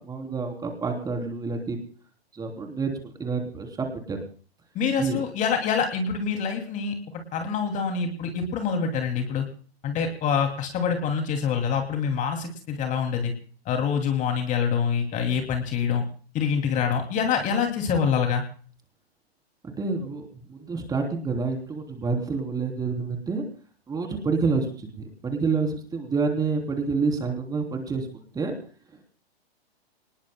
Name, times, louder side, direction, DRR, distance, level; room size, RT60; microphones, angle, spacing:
voice 1, 0.0-1.8 2.4-2.9 3.2-4.2 5.0-5.2 19.6-23.4 23.9-28.1 28.3-28.5, right 4 dB, 10° right, 3 dB, 3.2 m, -28 dB
voice 2, 4.7-7.0 7.3-9.5 9.8-13.3 13.7-16.0 16.3-18.4, left 6 dB, 25° left, 4 dB, 2.6 m, -25 dB
29.0 x 20.0 x 2.2 m, 0.44 s
figure-of-eight pair, 120°, 32 cm